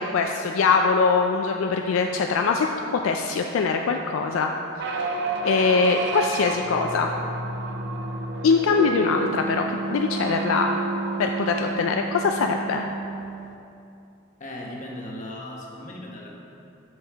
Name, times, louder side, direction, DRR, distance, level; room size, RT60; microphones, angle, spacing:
voice 1, 0.0-2.7 3.0-4.5 4.8-4.9 5.4-7.1 8.4-10.7 11.2-12.9, left 5 dB, 70° left, 3 dB, 0.3 m, -22 dB
sound 1, 4.8-13.5, right 3 dB, 55° right, 0.5 m, -30 dB
voice 2, 14.4-16.3, left 1 dB, 35° left, -2 dB, 1.1 m, -37 dB
8.3 x 6.2 x 3.4 m, 2.7 s
head